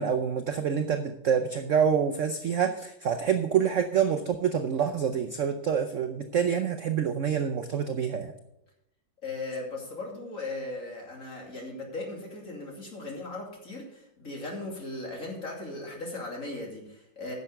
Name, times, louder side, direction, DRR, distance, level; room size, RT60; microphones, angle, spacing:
voice 1, 0.0-8.3, right 7 dB, 65° right, 6 dB, 0.7 m, -27 dB
voice 2, 9.2-17.3, left 2 dB, 45° left, -1 dB, 3.0 m, -38 dB
10.5 x 6.8 x 6.5 m, 0.85 s
omnidirectional pair, 2.1 m